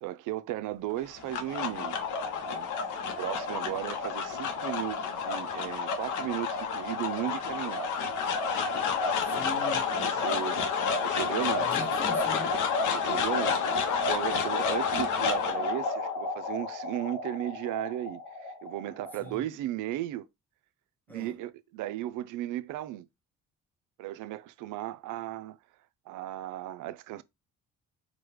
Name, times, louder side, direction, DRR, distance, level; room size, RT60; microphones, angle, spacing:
voice 1, 0.0-2.0 2.5-2.7 3.0-7.9 10.0-10.7 11.0-11.7 12.9-20.3 21.1-23.1 24.0-25.6 26.1-27.2, right 14 dB, 85° right, 0.5 m, -36 dB
sound 1, 1.0-19.3, left 5 dB, 85° left, 0.7 m, -30 dB
voice 2, 9.2-10.5 11.5-12.6 19.2-19.5 21.1-21.4, equal, 5° left, 0.9 m, -42 dB
4.7 x 2.2 x 3.0 m
cardioid pair, 90°, 30 cm